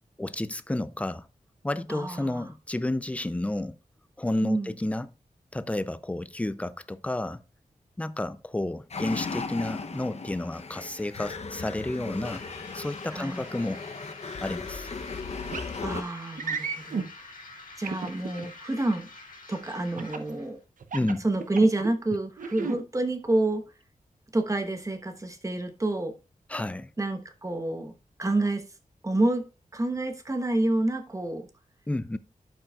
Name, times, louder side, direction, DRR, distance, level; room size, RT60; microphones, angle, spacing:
voice 1, 0.2-1.3 1.6-3.8 4.2-5.1 5.5-7.4 8.0-12.4 12.7-13.8 14.4-14.9 20.9-21.3 26.5-26.9 31.9-32.2, left 1 dB, 10° left, 0.4 m, -31 dB
voice 2, 1.9-2.4 4.4-4.7 13.1-13.4 15.8-17.3 17.8-19.1 19.5-20.6 21.2-23.6 24.3-26.1 27.0-27.9 28.2-28.6 29.0-29.4 29.7-31.5, right 2 dB, 20° right, 1.1 m, -28 dB
sound 1, 8.9-16.0, left 4 dB, 50° left, 0.7 m, -37 dB
sound 2, 12.2-20.5, left 3 dB, 70° left, 1.9 m, -47 dB
sound 3, 15.5-15.7 16.4-17.1 17.8-18.5 20.0-20.3 20.8-21.9 22.4-22.8, right 5 dB, 70° right, 0.7 m, -33 dB
12.5 x 5.4 x 2.3 m
wide cardioid pair, 120°, 14 cm